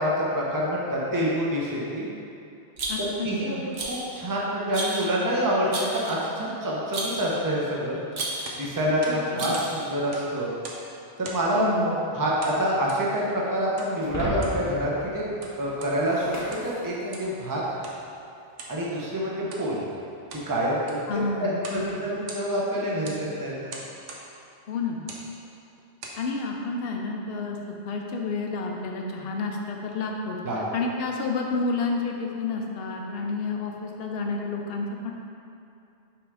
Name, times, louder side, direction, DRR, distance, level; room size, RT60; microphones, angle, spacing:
voice 1, 0.0-2.1 3.2-8.0 8.6-10.5 11.2-11.7 12.1-15.2 15.6-17.6 18.7-19.8 20.5-23.7 30.4-30.6, equal, 20° right, -5 dB, 0.7 m, -27 dB
Rattle, 2.8-3.3 3.7-4.1 4.7-5.1 5.7-6.3 6.9-7.3 8.1-8.6 9.4-9.9, right 2 dB, 60° right, 1.1 m, -32 dB
voice 2, 2.9-3.6 9.1-9.5 11.5-12.1 21.1-22.1 24.7-25.1 26.2-30.4 30.7-35.1, left 3 dB, 60° left, 1 dB, 0.8 m, -30 dB
sound 1, 8.2-9.7 10.0-10.9 11.2-11.6 12.4-13.1 13.8-13.9 14.3-14.6 15.2-16.0 16.4-16.8 17.1-17.4 17.8-18.0 18.6-18.8 19.4-19.7 20.1-20.5 20.8-21.1 21.6-21.9 22.1-22.7 23.0-23.2 23.7-24.3 25.0-25.3 25.8-26.2, right 3 dB, 90° right, 1.1 m, -41 dB
Shatter, 14.0-17.5, equal, 15° left, 0.8 m, -35 dB
6.0 x 3.6 x 4.8 m, 2.6 s
omnidirectional pair, 1.2 m